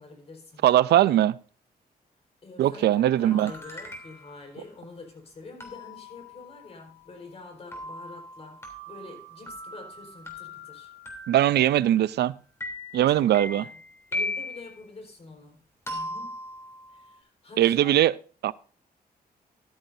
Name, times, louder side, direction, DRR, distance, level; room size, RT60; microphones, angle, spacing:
voice 1, 0.0-0.7 2.4-10.9 13.1-13.8 14.1-15.6 15.9-16.4 16.9-18.0, left 3 dB, 40° left, 4.5 m, -46 dB
voice 2, 0.6-1.4 2.6-3.5 11.3-12.3 12.9-13.6 17.6-18.1 18.4-18.5, right 12 dB, 85° right, 0.4 m, -20 dB
sound 1, 3.1-4.4 5.6-12.3 12.6-14.8 15.9-17.1, left 1 dB, 15° left, 3.2 m, -39 dB
14.0 x 12.0 x 2.7 m
wide cardioid pair, 140°, 17 cm